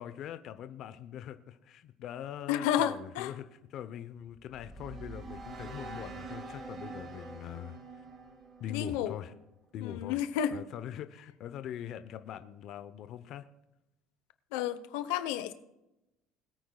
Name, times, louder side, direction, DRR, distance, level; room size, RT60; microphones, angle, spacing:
voice 1, 0.0-3.4 3.7-7.8 8.6-9.3 9.7-10.2 10.5-13.4, left 10 dB, 50° left, 11 dB, 0.7 m, -42 dB
voice 2, 2.5-3.3 8.7-9.1 9.8-10.5 14.5-15.5, left 10 dB, 85° left, 11 dB, 0.9 m, -31 dB
sound 1, 4.2-9.5, right 3 dB, 35° right, 1.9 m, -45 dB
21.0 x 9.1 x 2.3 m, 0.92 s
cardioid pair, 130°, 0 cm